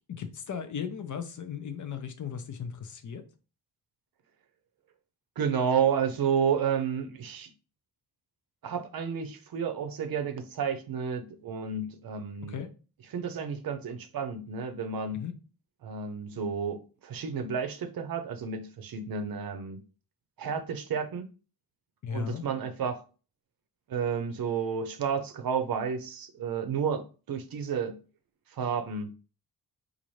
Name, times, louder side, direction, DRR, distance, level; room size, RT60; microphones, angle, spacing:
voice 1, 0.1-3.2 12.4-12.7 15.1-15.4 22.0-22.4, left 7 dB, 50° left, 0.6 m, -36 dB
voice 2, 5.4-7.5 8.6-12.6 13.1-15.2 15.8-19.8 20.4-21.2 22.1-23.0 23.9-28.0 28.5-29.1, right 6 dB, 65° right, 0.6 m, -31 dB
4.0 x 2.5 x 3.1 m
wide cardioid pair, 110°, 39 cm